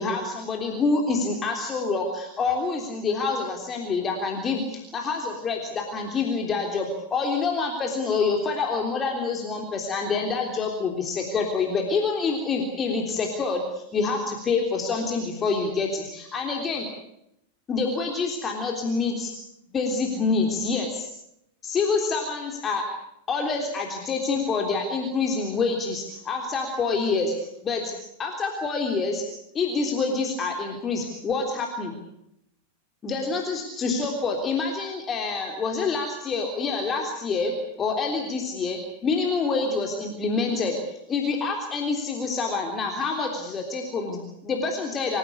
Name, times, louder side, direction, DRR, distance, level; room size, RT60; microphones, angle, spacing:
voice 1, 0.0-16.9 17.7-19.3 19.7-21.1 21.6-22.9 23.3-27.9 28.2-29.2 29.5-32.0 33.0-40.8 41.1-45.2, left 4 dB, 25° left, 2 dB, 3.5 m, -27 dB
27.0 x 16.0 x 8.4 m, 0.78 s
figure-of-eight pair, 90°, 0 cm